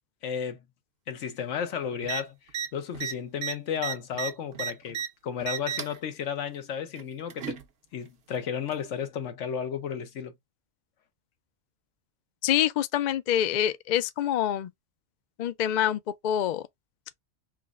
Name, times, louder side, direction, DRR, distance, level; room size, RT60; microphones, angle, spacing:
voice 1, 0.2-0.6 1.1-2.3 2.7-5.0 5.2-7.6 7.9-10.3, left 7 dB, 85° left, 1.1 m, -33 dB
sound 1, 2.0-2.2 2.5-2.7 2.9-5.1 5.4-6.0 7.0-7.6 8.7-8.8, right 7 dB, 60° right, 0.9 m, -33 dB
voice 2, 12.4-14.7 15.4-16.7, left 11 dB, 65° left, 0.4 m, -26 dB
6.0 x 2.0 x 2.3 m
omnidirectional pair, 1.2 m